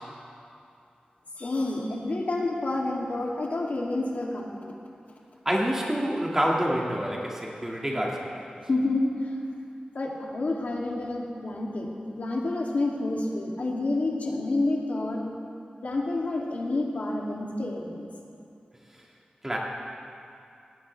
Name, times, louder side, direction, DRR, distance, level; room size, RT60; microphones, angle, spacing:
voice 1, 1.4-4.8 8.7-9.3 9.9-15.2 15.8-18.1, left 2 dB, 60° left, -2 dB, 2.4 m, -29 dB
voice 2, 5.5-8.5 19.4-19.6, equal, 15° right, -3 dB, 1.9 m, -27 dB
19.0 x 17.0 x 3.3 m, 2.5 s
wide cardioid pair, 110°, 3 cm